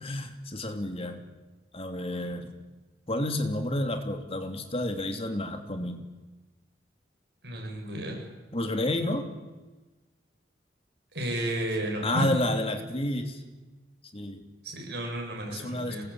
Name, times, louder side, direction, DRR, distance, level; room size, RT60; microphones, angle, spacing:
voice 1, 0.0-1.2 1.7-2.5 3.1-6.0 8.5-9.3 12.0-13.4 14.1-14.4 15.5-16.0, left 1 dB, 35° left, 6 dB, 2.8 m, -30 dB
voice 2, 7.4-8.2 11.1-12.3 14.6-16.0, right 1 dB, 65° right, 1 dB, 8.0 m, -32 dB
26.5 x 20.5 x 8.9 m, 1.2 s
head